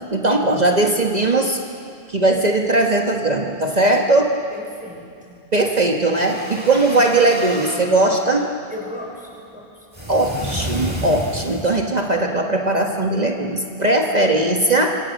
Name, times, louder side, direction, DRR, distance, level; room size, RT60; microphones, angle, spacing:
voice 1, 0.1-1.6 2.1-4.3 5.5-8.5 10.1-15.0, right 2 dB, 40° right, 1 dB, 1.5 m, -19 dB
voice 2, 4.5-5.4 6.8-7.0 8.7-9.7, left 1 dB, 5° right, -2 dB, 5.8 m, -36 dB
sound 1, 6.0-7.9 9.9-11.8, equal, 20° right, 4.1 m, -30 dB
26.0 x 25.5 x 6.6 m, 2.4 s
omnidirectional pair, 1.1 m